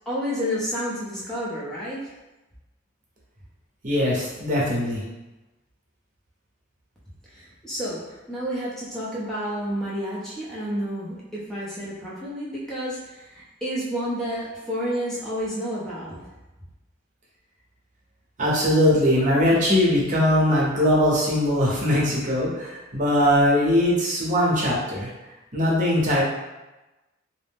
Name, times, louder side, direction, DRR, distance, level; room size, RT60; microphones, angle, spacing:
voice 1, 0.1-2.1 7.2-16.2, equal, ahead, -9 dB, 0.6 m, -30 dB
voice 2, 3.8-5.0 18.4-25.1 25.5-26.2, left 1 dB, 40° right, -6 dB, 0.8 m, -21 dB
2.5 x 2.0 x 3.4 m, 1.1 s
head